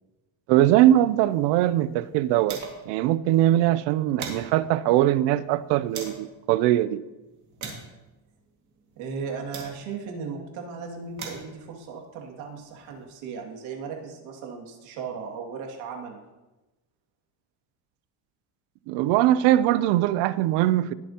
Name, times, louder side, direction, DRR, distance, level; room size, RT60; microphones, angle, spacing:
voice 1, 0.5-2.6 2.9-7.0 18.9-20.9, right 13 dB, 65° right, 0.6 m, -21 dB
sound 1, 1.2-3.0 3.3-3.4 3.8-6.3 6.9-10.1 10.8-13.0, right 5 dB, 40° right, 2.1 m, -43 dB
voice 2, 9.0-16.2, right 5 dB, 85° right, 2.4 m, -36 dB
20.0 x 7.0 x 2.9 m
cardioid pair, 175°, 46 cm